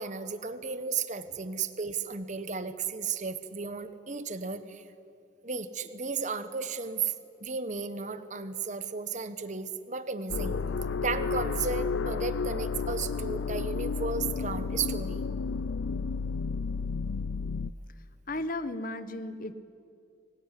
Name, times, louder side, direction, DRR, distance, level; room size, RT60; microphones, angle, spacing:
voice 1, 0.0-4.8 5.4-7.1 7.4-10.5 11.0-15.2, right 5 dB, 40° right, 11 dB, 1.2 m, -34 dB
sound 1, 10.3-17.7, left 4 dB, 75° left, 0.5 m, -32 dB
voice 2, 18.0-19.5, left 1 dB, 45° left, 12 dB, 1.2 m, -35 dB
23.5 x 19.0 x 9.9 m, 2.5 s
head